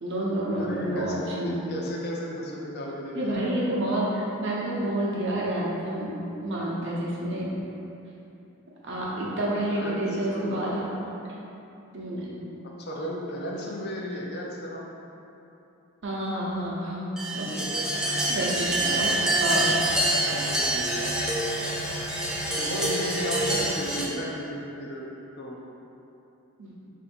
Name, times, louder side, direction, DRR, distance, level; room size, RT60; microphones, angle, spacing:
voice 1, 0.0-1.6 3.1-6.1 6.4-7.5 8.8-10.9 11.9-12.3 16.0-17.5 17.9-19.1 19.4-19.7 23.5-23.7 26.6-26.7, right 1 dB, 55° right, -5 dB, 0.8 m, -29 dB
voice 2, 0.6-3.6 9.7-10.6 12.6-14.9 17.3-17.9 18.6-19.2 20.3-21.1 22.6-25.1 25.4-25.6, equal, 45° left, -3 dB, 0.6 m, -35 dB
sound 1, 17.2-24.1, right 1 dB, 5° right, 0.4 m, -27 dB
sound 2, 17.8-23.7, right 1 dB, 90° left, 1.1 m, -36 dB
3.7 x 2.7 x 4.3 m, 2.8 s
head